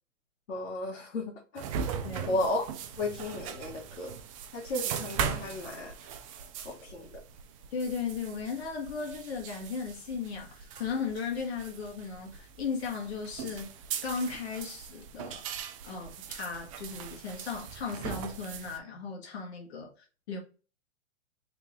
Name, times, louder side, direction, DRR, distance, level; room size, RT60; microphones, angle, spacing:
voice 1, 0.5-1.9 2.3-2.6 3.0-4.1 4.5-6.1 6.6-7.1, left 2 dB, 80° left, 1.3 m, -34 dB
sound 1, 1.5-18.8, right 7 dB, 30° right, 0.4 m, -40 dB
voice 2, 2.0-2.4 7.7-13.7 14.0-15.4 15.8-20.4, left 5 dB, 55° left, 1.7 m, -36 dB
3.3 x 3.2 x 3.2 m
hypercardioid pair, 120°, 37 cm